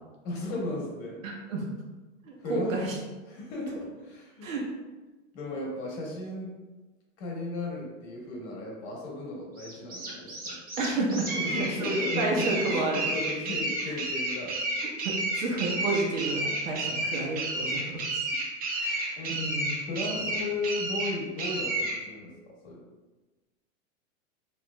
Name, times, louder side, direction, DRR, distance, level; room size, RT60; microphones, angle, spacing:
voice 1, 0.2-1.2 2.4-2.9 3.3-4.5 5.3-6.5 7.2-10.6 11.3-14.6 16.8-17.2 19.2-19.4 19.8-22.8, left 2 dB, 60° left, -2 dB, 1.3 m, -35 dB
voice 2, 1.2-1.7 2.2-3.0 4.4-4.6 10.8-11.3 11.5-13.1 13.9-14.0 15.0-18.2 18.7-19.7, right 2 dB, 85° right, -1 dB, 1.1 m, -31 dB
sound 1, 9.6-22.0, right 2 dB, 25° right, 0.7 m, -31 dB
4.4 x 2.9 x 2.3 m, 1.2 s
hypercardioid pair, 130°, 39 cm